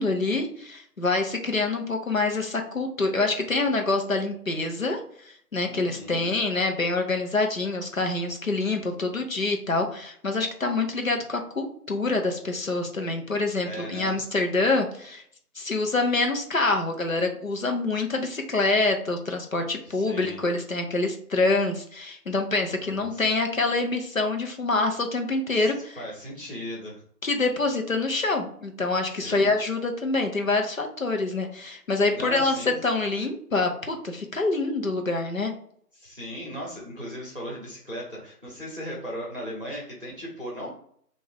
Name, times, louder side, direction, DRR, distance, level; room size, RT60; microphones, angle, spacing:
voice 1, 0.0-5.0 5.3-15.2 15.6-26.0 27.2-35.5, left 3 dB, 55° left, 4 dB, 0.8 m, -26 dB
voice 2, 5.7-6.3 13.6-14.2 19.8-20.5 22.8-23.2 25.5-27.0 29.1-29.5 32.1-32.8 35.9-40.7, equal, 35° right, -4 dB, 0.9 m, -37 dB
3.5 x 2.6 x 3.4 m, 0.62 s
figure-of-eight pair, 170°, 48 cm